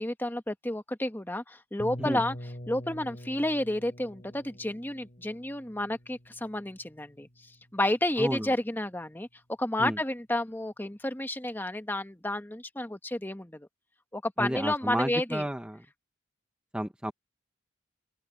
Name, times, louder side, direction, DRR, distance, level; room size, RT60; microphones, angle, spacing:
voice 1, 0.0-2.3 2.7-7.3 7.7-9.3 9.6-13.7 14.1-15.4, left 1 dB, 10° left, 1.2 m, -31 dB
sound 1, 1.8-7.6, equal, 45° left, 3.0 m, -44 dB
voice 2, 8.2-8.5 9.8-10.0 14.4-15.8 16.7-17.1, equal, 5° right, 0.7 m, -31 dB
open air
head